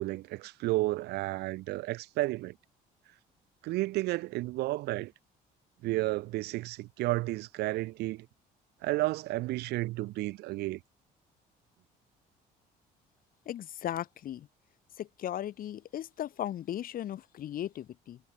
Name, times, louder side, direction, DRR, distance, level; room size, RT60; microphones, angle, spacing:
voice 1, 0.0-2.5 3.6-5.1 5.8-8.3 8.8-10.8, right 19 dB, 75° right, 0.5 m, -32 dB
voice 2, 13.5-14.5 15.0-18.2, left 11 dB, 60° left, 1.9 m, -37 dB
cardioid pair, 110°, 17 cm